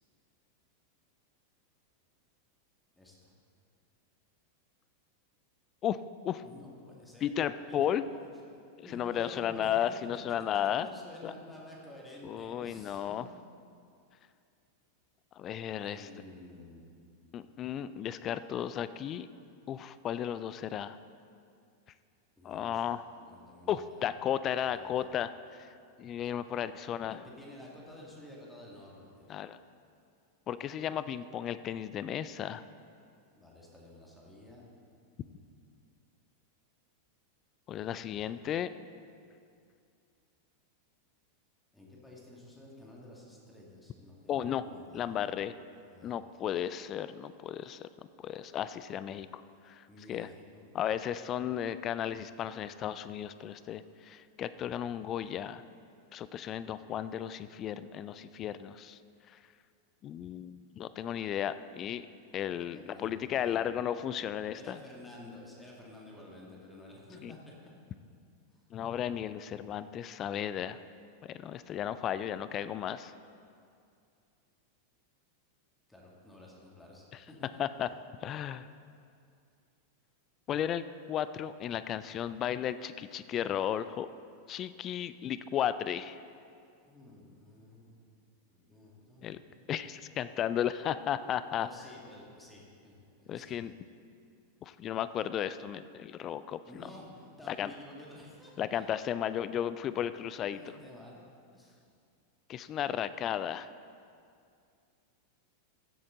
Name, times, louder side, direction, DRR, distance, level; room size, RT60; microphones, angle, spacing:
voice 1, 3.0-3.3 6.4-7.3 7.7-8.3 8.8-13.2 15.8-16.9 22.4-22.8 23.2-24.1 24.6-25.1 27.1-29.3 33.3-34.7 41.7-45.3 45.7-46.1 49.9-50.6 62.7-63.7 64.5-67.5 68.5-68.6 75.9-77.9 86.8-87.9 88.5-89.3 91.5-93.6 96.7-99.4 100.5-101.2 101.5-101.9, left 1 dB, 5° left, -3 dB, 2.0 m, -51 dB
voice 2, 7.2-8.0 8.9-10.9 11.2-11.3 12.2-13.3 15.4-16.1 17.3-19.3 19.7-21.0 22.4-23.1 23.7-25.7 26.0-27.2 29.3-29.6 30.5-32.6 37.7-38.7 44.3-44.6 44.9-45.5 46.0-47.9 48.2-50.3 50.7-55.6 56.1-59.0 59.3-59.4 60.0-62.1 62.3-64.8 67.2-67.3 68.7-70.8 71.2-73.1 77.6-77.9 78.2-78.7 80.5-84.1 84.5-86.2 89.2-89.4 89.7-91.7 93.3-93.7 94.6-96.6 97.5-97.7 98.6-100.6 102.5-103.7, left 10 dB, 30° left, 14 dB, 0.3 m, -34 dB
15.0 x 7.7 x 3.9 m, 2.4 s
figure-of-eight pair, 90°, 0 cm